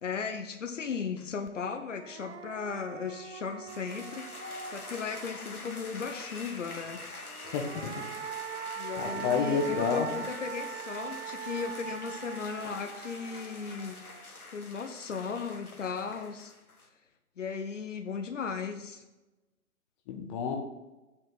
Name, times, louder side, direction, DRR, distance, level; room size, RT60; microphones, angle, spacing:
voice 1, 0.0-4.3 4.7-7.0 8.8-14.0 14.5-16.5 17.4-19.0, left 5 dB, 55° left, 7 dB, 1.1 m, -36 dB
sound 1, 1.5-1.6 1.9-5.6 7.2-14.5, right 9 dB, 50° right, 0.7 m, -42 dB
sound 2, 3.7-16.9, left 2 dB, 80° left, 1.8 m, -45 dB
voice 2, 7.4-8.0 9.0-10.1 12.6-12.7 20.1-20.6, left 5 dB, 20° left, 3 dB, 1.2 m, -30 dB
8.8 x 8.7 x 4.1 m, 1.1 s
figure-of-eight pair, 130°, 43 cm